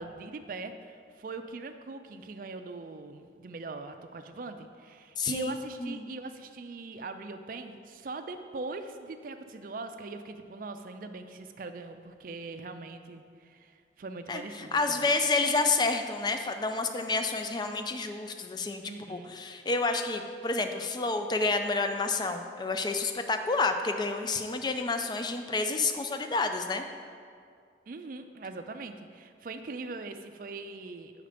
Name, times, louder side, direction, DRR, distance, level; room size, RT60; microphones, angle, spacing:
voice 1, 0.0-15.1 18.8-19.3 27.9-31.1, right 3 dB, 50° right, 8 dB, 0.4 m, -41 dB
voice 2, 5.2-5.5 5.8-6.1 14.3-18.8 19.1-26.8, left 3 dB, 25° left, 6 dB, 0.4 m, -29 dB
6.7 x 4.9 x 5.0 m, 2.2 s
head